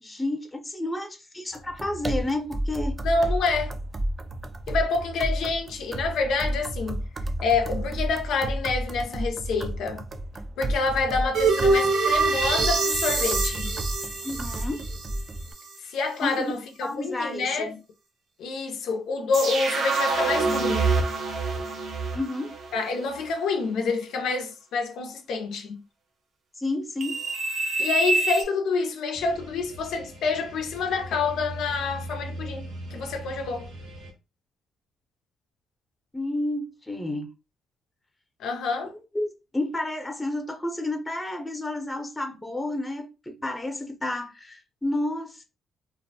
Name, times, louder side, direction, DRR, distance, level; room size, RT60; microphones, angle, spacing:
voice 1, 0.0-3.0 14.2-14.8 16.2-16.5 16.8-17.8 22.1-22.5 26.6-27.2 36.1-37.3 39.1-45.4, left 1 dB, 15° left, 0.6 m, -31 dB
sound 1, 1.5-15.5, right 1 dB, 30° right, 0.3 m, -32 dB
voice 2, 3.0-3.7 4.7-7.0 7.4-10.1 10.6-13.7 15.9-17.7 18.4-20.9 22.7-25.8 27.8-33.7 38.4-38.9, left 4 dB, 80° left, 0.4 m, -27 dB
sound 2, 11.3-15.2 15.7-15.8 19.3-23.0 27.0-28.4, right 3 dB, 70° right, 0.6 m, -25 dB
sound 3, 29.1-34.1, right 1 dB, 85° right, 1.0 m, -40 dB
2.4 x 2.0 x 2.6 m
cardioid pair, 90°, 0 cm